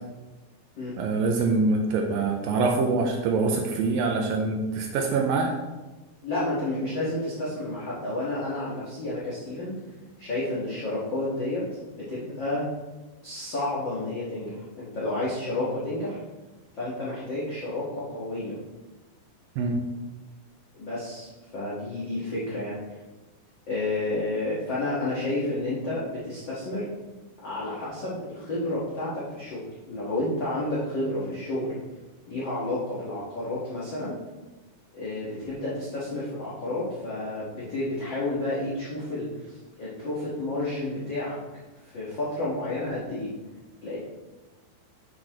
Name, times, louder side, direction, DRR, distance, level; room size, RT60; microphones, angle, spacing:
voice 1, 1.0-5.6 19.6-19.8, right 3 dB, 80° right, 2 dB, 2.2 m, -24 dB
voice 2, 6.2-9.7 10.2-12.6 13.2-16.2 16.7-18.6 20.8-21.3 21.5-22.8 23.7-26.9 27.4-31.7 32.3-34.1 34.9-41.4 41.9-43.3 43.8-44.0, left 2 dB, 70° left, -9 dB, 1.1 m, -30 dB
8.3 x 6.6 x 3.0 m, 1.2 s
omnidirectional pair, 4.6 m